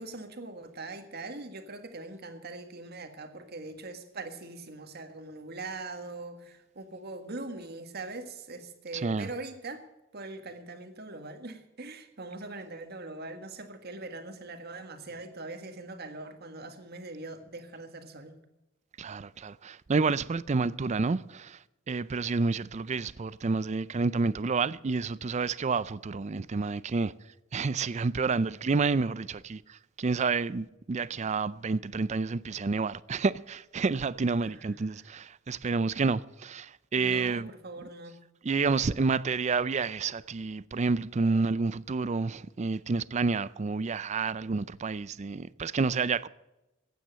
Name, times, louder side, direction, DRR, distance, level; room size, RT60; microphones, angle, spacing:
voice 1, 0.0-9.9 10.1-18.4 34.4-34.7 37.0-38.2, right 2 dB, 50° right, 1.8 m, -42 dB
voice 2, 8.9-9.3 19.0-21.6 21.9-27.1 27.5-37.5 37.8-37.9 38.4-46.3, right 4 dB, 35° right, 0.4 m, -29 dB
15.0 x 9.3 x 7.5 m
head